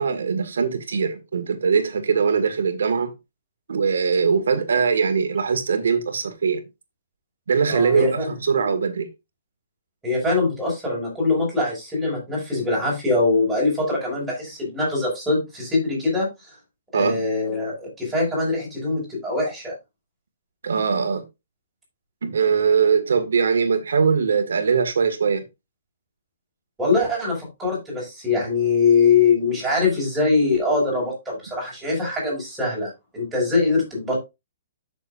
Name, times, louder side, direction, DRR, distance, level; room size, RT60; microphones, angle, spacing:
voice 1, 0.0-3.1 3.7-6.6 7.5-9.1 16.9-17.2 20.6-21.3 22.2-25.4, right 5 dB, 85° right, 1.9 m, -21 dB
voice 2, 7.7-8.3 10.0-16.6 16.9-19.8 26.8-34.2, left 3 dB, 5° right, 5.8 m, -23 dB
11.5 x 6.6 x 2.6 m
hypercardioid pair, 165°, 0 cm